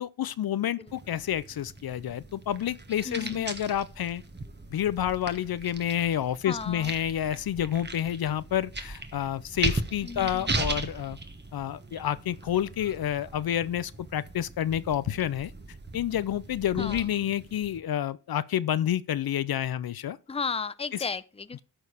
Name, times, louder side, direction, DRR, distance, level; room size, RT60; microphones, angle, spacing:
voice 1, 0.0-4.2 4.7-11.2 11.5-15.5 15.9-20.2, left 10 dB, 70° left, 0.6 m, -29 dB
sound 1, 0.9-17.8, right 2 dB, 25° right, 1.4 m, -38 dB
voice 2, 3.0-3.5 6.4-6.9 10.0-10.6 16.8-17.0 20.3-21.6, left 5 dB, 15° left, 0.6 m, -34 dB
13.5 x 4.7 x 4.9 m
cardioid pair, 60°, 38 cm